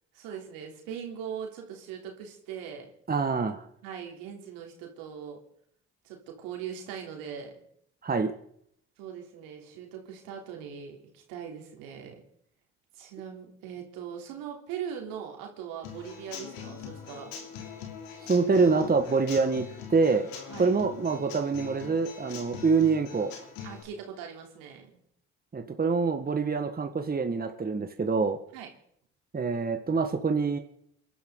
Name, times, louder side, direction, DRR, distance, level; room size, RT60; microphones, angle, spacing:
voice 1, 0.1-2.9 3.8-5.4 6.0-7.6 9.0-12.2 12.9-17.3 20.5-20.7 23.6-25.0 28.5-28.7, right 8 dB, 75° right, 1 dB, 3.5 m, -40 dB
voice 2, 3.1-3.6 8.0-8.3 18.3-20.3 20.6-23.3 25.5-28.4 29.3-30.6, right 4 dB, 25° right, 6 dB, 1.6 m, -25 dB
Human voice / Acoustic guitar / Drum, 15.8-23.8, left 7 dB, 75° left, 3.1 m, -43 dB
29.5 x 11.5 x 3.9 m, 0.70 s
hypercardioid pair, 55°, 35 cm